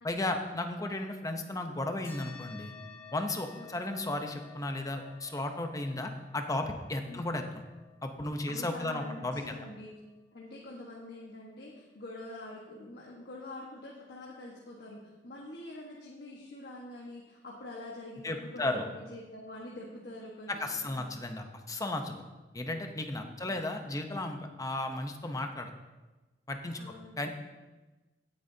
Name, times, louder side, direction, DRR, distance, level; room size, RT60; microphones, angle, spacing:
voice 1, 0.0-2.7 3.1-7.6 8.0-9.4 18.2-18.8 20.5-22.2 22.5-25.7 26.5-26.8 27.2-27.3, left 2 dB, 20° left, 5 dB, 0.8 m, -34 dB
sound 1, 2.0-11.0, left 6 dB, 40° left, 3.8 m, -54 dB
voice 2, 3.6-3.9 7.1-7.2 8.5-9.9 10.3-21.2 23.2-23.6 26.8-27.2, left 1 dB, 65° left, -3 dB, 1.4 m, -46 dB
17.0 x 8.7 x 2.8 m, 1.2 s
head